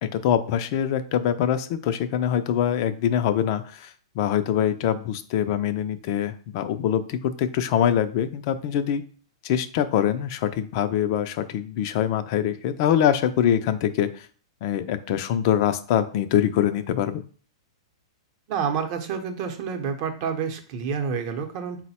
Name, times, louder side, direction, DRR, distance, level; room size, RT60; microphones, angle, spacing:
voice 1, 0.0-9.0 9.4-14.3 14.6-17.2, left 10 dB, 50° left, 10 dB, 0.4 m, -24 dB
voice 2, 18.5-21.8, right 6 dB, 45° right, 5 dB, 0.7 m, -28 dB
4.0 x 2.1 x 4.2 m, 0.42 s
hypercardioid pair, 130°, 3 cm